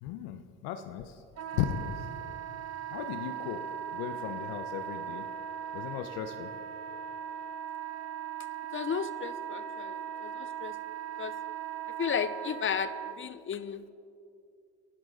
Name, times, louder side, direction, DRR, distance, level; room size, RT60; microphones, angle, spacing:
voice 1, 0.0-1.2 1.5-2.0 2.9-3.7 3.9-5.3 5.7-6.5, left 10 dB, 75° left, 8 dB, 1.0 m, -36 dB
Wind instrument woodwind instrument, 1.4-13.1, right 9 dB, 45° right, 1.0 m, -39 dB
voice 2, 8.7-10.8 11.2-11.3 12.0-13.8, left 7 dB, 35° left, 14 dB, 0.9 m, -34 dB
29.5 x 12.5 x 4.0 m, 2.5 s
hypercardioid pair, 70°, 35 cm